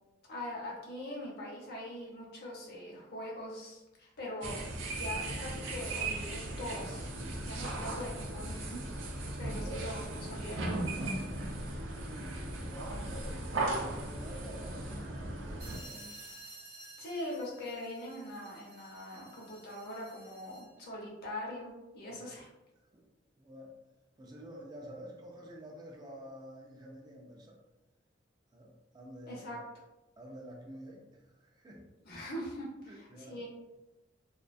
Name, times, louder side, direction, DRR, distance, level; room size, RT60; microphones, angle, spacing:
voice 1, 0.3-4.6 4.9-7.0 7.4-8.8 9.4-10.0 10.3-10.8 17.0-22.5 29.3-29.6 32.1-33.5, left 1 dB, 55° left, -3 dB, 0.7 m, -42 dB
sound 1, 4.4-15.8, right 2 dB, 85° right, 0.4 m, -37 dB
voice 2, 12.1-12.4 12.7-16.2 22.1-22.3 22.9-23.1 23.4-23.8 24.2-27.6 28.5-29.7 30.2-31.9 32.9-33.4, equal, 20° right, -1 dB, 0.3 m, -49 dB
sound 2, 15.6-20.8, right 2 dB, 40° right, 0.7 m, -52 dB
2.3 x 2.2 x 2.4 m, 1.0 s
head